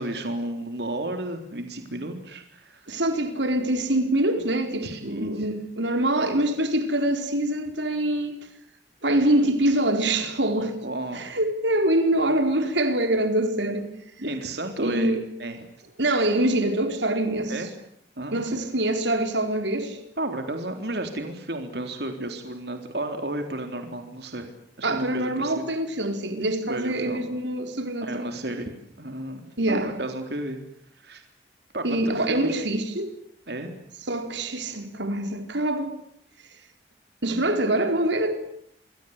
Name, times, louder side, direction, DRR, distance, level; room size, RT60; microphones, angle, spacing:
voice 1, 0.0-3.0 4.8-5.5 10.8-11.4 14.2-15.7 17.5-17.7 18.2-18.4 20.2-24.5 24.8-25.5 26.7-27.2 28.0-30.6 31.0-31.2 31.7-32.6 33.5-33.7, right 1 dB, 65° right, 3.7 m, -33 dB
voice 2, 2.9-8.4 9.0-10.7 11.1-13.9 14.8-15.2 16.0-17.5 18.3-20.0 24.8-28.3 29.6-29.9 31.8-33.2 34.1-36.0 37.2-38.3, right 1 dB, 85° right, 4.4 m, -24 dB
28.5 x 23.5 x 8.3 m
head